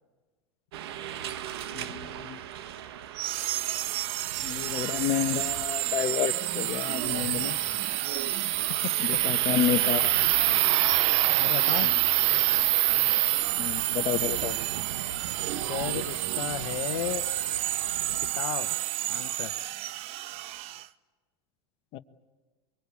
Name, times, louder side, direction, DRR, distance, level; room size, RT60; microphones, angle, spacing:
sound 1, 0.7-18.4, right 10 dB, 80° right, 1.6 m, -40 dB
voice 1, 1.7-2.4 4.4-7.5 9.0-10.3 11.8-11.9 13.6-14.6 21.9-22.0, left 12 dB, 45° left, 8 dB, 1.4 m, -30 dB
sound 2, 3.2-20.8, right 15 dB, 50° right, 1.0 m, -27 dB
voice 2, 11.4-12.0 15.6-17.3 18.2-19.6, left 14 dB, 65° left, 9 dB, 1.2 m, -35 dB
24.0 x 23.5 x 8.5 m, 1.3 s
supercardioid pair, 120°, 13 cm